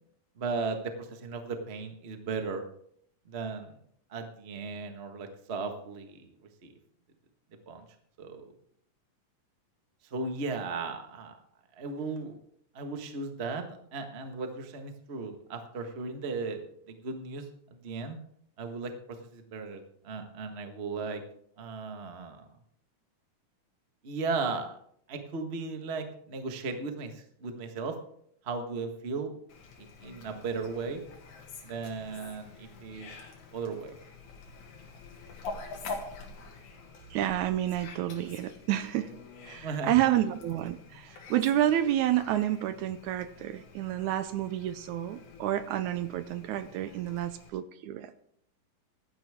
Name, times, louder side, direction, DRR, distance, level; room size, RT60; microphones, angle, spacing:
voice 1, 0.4-2.6 3.2-3.7 4.1-6.3 6.6-6.7 7.7-7.8 8.2-8.4 10.1-11.4 11.7-12.4 12.7-13.6 13.9-16.6 16.9-18.2 18.6-21.2 21.6-22.5 24.0-24.8 25.1-27.9 28.4-29.3 29.8-31.0 31.6-33.1 33.5-33.9 39.6-39.9, right 4 dB, 40° right, 5 dB, 0.9 m, -36 dB
Fowl, 29.5-47.5, left 3 dB, 70° left, 3.3 m, -47 dB
voice 2, 37.1-39.1 39.4-48.1, right 12 dB, 75° right, 12 dB, 2.0 m, -29 dB
16.0 x 12.0 x 3.6 m, 0.66 s
omnidirectional pair, 3.7 m